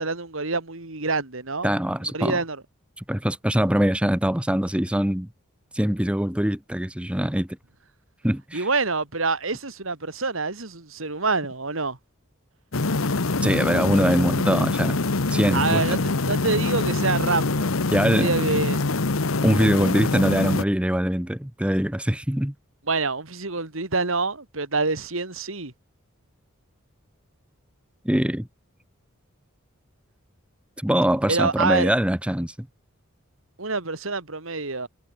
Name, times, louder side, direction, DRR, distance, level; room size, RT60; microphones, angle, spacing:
voice 1, 0.0-1.7 2.1-2.6 8.5-12.0 15.5-17.8 18.1-18.8 22.9-25.7 31.3-31.9 33.6-34.9, right 3 dB, 70° right, 2.7 m, -26 dB
voice 2, 1.6-2.4 3.0-5.3 5.7-7.5 8.2-8.7 13.4-15.0 15.3-16.0 17.9-18.3 19.4-22.5 28.0-28.5 30.8-32.5, equal, 5° right, 0.8 m, -23 dB
sound 1, 12.7-20.6, left 3 dB, 85° left, 1.2 m, -24 dB
head